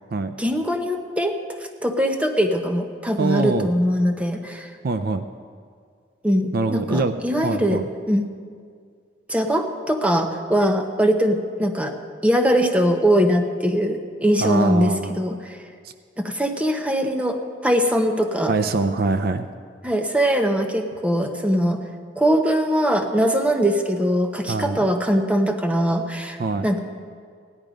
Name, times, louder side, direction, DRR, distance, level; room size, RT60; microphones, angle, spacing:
voice 1, 0.4-1.4 1.8-4.7 6.2-7.8 8.1-8.3 9.3-12.0 12.2-15.6 16.2-18.5 19.8-21.8 22.2-26.8, equal, 5° right, 5 dB, 0.8 m, -21 dB
voice 2, 3.2-3.7 4.8-5.2 6.5-7.1 7.4-7.9 14.4-15.2 18.5-19.5 24.5-24.8 26.4-26.7, right 3 dB, 55° right, 10 dB, 0.4 m, -23 dB
16.0 x 11.0 x 5.1 m, 2.1 s
head